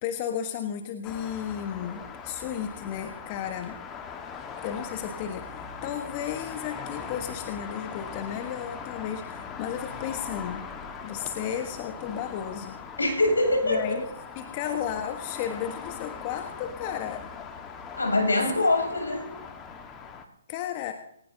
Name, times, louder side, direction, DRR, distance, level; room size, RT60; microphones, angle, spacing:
voice 1, 0.0-3.8 4.6-10.7 11.0-12.8 13.6-14.1 14.4-17.2 18.5-19.0 20.5-20.9, left 9 dB, 30° left, 6 dB, 1.3 m, -34 dB
sound 1, 1.0-20.2, left 6 dB, 15° left, 1.6 m, -40 dB
voice 2, 13.0-14.0 18.0-19.3, left 2 dB, 80° left, 3 dB, 7.9 m, -24 dB
19.5 x 19.0 x 2.8 m, 0.73 s
figure-of-eight pair, 135°, 0 cm